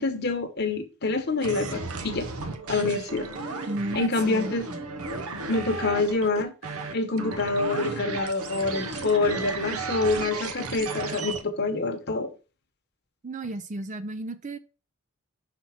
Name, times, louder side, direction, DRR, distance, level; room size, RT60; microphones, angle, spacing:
voice 1, 0.0-2.3 2.7-3.3 3.9-4.6 5.5-6.5 6.9-12.3, left 3 dB, 45° left, 1.0 m, -26 dB
sound 1, 1.4-11.4, right 3 dB, 80° right, 1.0 m, -34 dB
voice 2, 3.7-4.8 13.2-14.6, right 2 dB, 35° right, 0.4 m, -33 dB
6.0 x 4.2 x 5.7 m
head